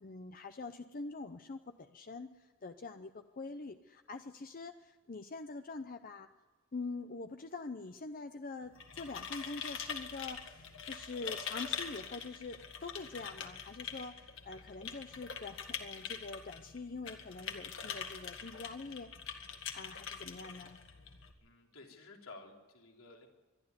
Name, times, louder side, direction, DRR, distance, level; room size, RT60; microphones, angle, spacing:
voice 1, 0.0-6.3 6.7-19.1 19.7-20.8, left 3 dB, 40° left, 8 dB, 0.6 m, -45 dB
sound 1, 8.6-21.3, left 7 dB, 65° left, 1.9 m, -44 dB
voice 2, 21.4-23.3, left 3 dB, 85° left, 1 dB, 3.4 m, -53 dB
23.0 x 12.0 x 9.6 m, 1.2 s
head